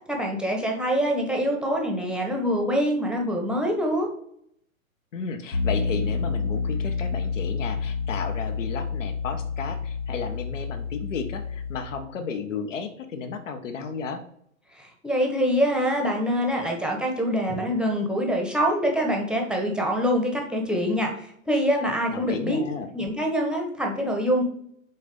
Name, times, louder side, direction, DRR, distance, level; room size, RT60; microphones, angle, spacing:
voice 1, 0.1-4.1 14.8-22.6 22.9-24.4, equal, ahead, 0 dB, 1.0 m, -25 dB
voice 2, 5.1-14.2 22.1-22.9, left 5 dB, 60° left, 7 dB, 1.3 m, -33 dB
Piano, 5.5-11.8, left 5 dB, 80° left, 1.4 m, -29 dB
6.4 x 4.0 x 5.3 m, 0.71 s
hypercardioid pair, 120°, 42 cm